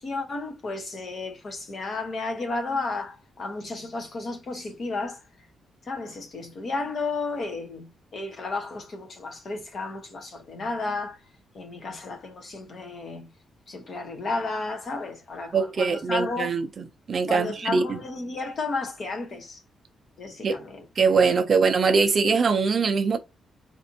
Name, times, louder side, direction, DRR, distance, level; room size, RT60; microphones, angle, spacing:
voice 1, 0.0-5.2 5.9-11.2 11.5-13.3 13.7-16.5 17.3-19.6 20.2-21.4, left 3 dB, 40° left, 0.9 m, -33 dB
voice 2, 15.5-16.7 17.1-18.0 20.4-20.6 21.0-23.2, right 5 dB, 35° right, 0.5 m, -22 dB
4.2 x 2.6 x 2.7 m
cardioid pair, 170°, 0 cm